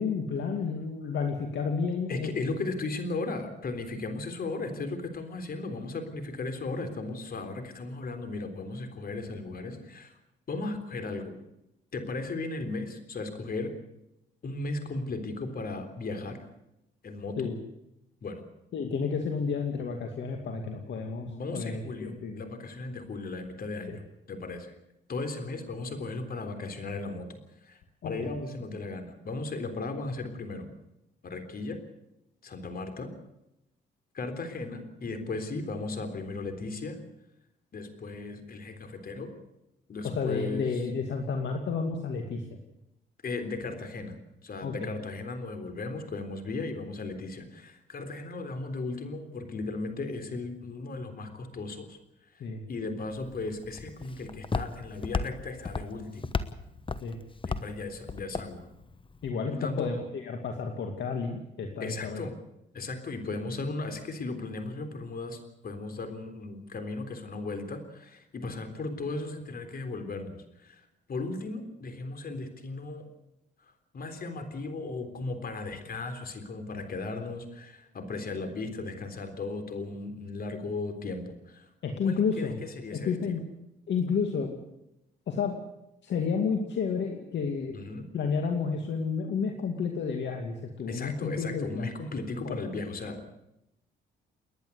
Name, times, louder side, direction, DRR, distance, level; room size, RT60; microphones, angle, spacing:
voice 1, 0.0-2.3 17.4-17.6 18.7-22.4 23.9-24.0 28.0-28.3 40.0-42.6 44.6-44.9 52.4-52.6 57.0-57.2 59.2-62.3 81.8-82.6 82.9-83.4 83.9-84.5 85.3-85.6 86.0-87.8 88.1-91.9 92.4-92.6, left 5 dB, 65° left, 3 dB, 2.4 m, -31 dB
voice 2, 2.1-10.1 10.5-11.3 11.9-13.7 14.4-16.4 17.0-17.4 18.2-18.4 21.3-24.0 24.3-24.7 25.1-27.3 27.6-30.7 31.2-31.8 32.4-33.1 34.1-37.0 37.7-39.3 39.9-40.8 43.2-44.2 44.4-52.0 52.3-56.2 57.4-58.7 59.5-59.9 61.8-62.3 62.7-73.1 73.9-81.7 82.0-83.4 87.7-88.1 90.9-93.2, left 3 dB, 50° left, 8 dB, 3.7 m, -36 dB
Walk footsteps, 53.1-59.3, left 4 dB, 25° left, 1.2 m, -36 dB
29.5 x 10.5 x 8.3 m, 0.86 s
cardioid pair, 90°, 20 cm